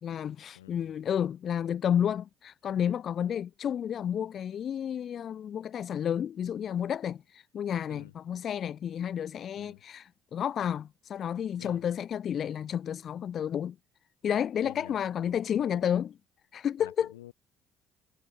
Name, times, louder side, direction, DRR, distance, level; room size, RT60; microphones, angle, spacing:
voice 1, 0.0-13.8 14.2-16.1 16.5-17.1, left 9 dB, 55° left, 2.4 m, -31 dB
voice 2, 14.6-15.8 16.8-17.3, left 14 dB, 85° left, 5.7 m, -50 dB
hypercardioid pair, 55°, 0 cm